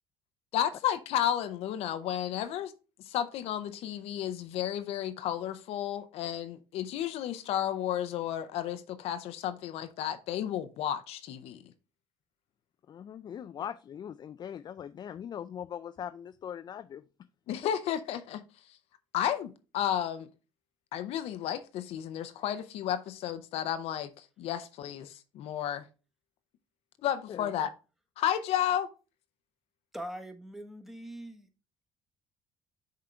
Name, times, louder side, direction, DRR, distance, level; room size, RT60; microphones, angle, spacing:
voice 1, 0.5-2.7 3.1-11.6 17.5-18.4 19.1-20.3 20.9-25.8 27.0-27.7 28.2-28.9, left 10 dB, 75° left, 11 dB, 0.7 m, -32 dB
voice 2, 12.9-17.0 27.3-27.5, left 9 dB, 40° left, 11 dB, 0.3 m, -41 dB
voice 3, 29.9-31.5, right 1 dB, 5° right, 6 dB, 1.2 m, -42 dB
6.7 x 3.8 x 4.4 m, 0.33 s
supercardioid pair, 80°, 11 cm